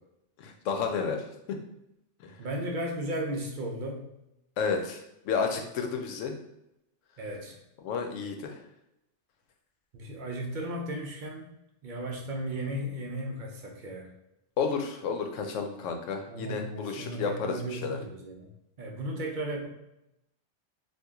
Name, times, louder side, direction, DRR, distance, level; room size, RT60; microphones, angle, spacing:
voice 1, 0.4-1.6 2.2-2.4 4.6-6.4 7.8-8.6 14.6-18.0, left 5 dB, 85° left, 4 dB, 0.9 m, -31 dB
voice 2, 2.4-4.0 7.2-7.6 9.9-11.5 11.8-14.1 16.3-18.5 18.8-19.7, right 1 dB, 55° right, 1 dB, 0.6 m, -35 dB
3.0 x 2.5 x 3.5 m, 0.85 s
omnidirectional pair, 1.3 m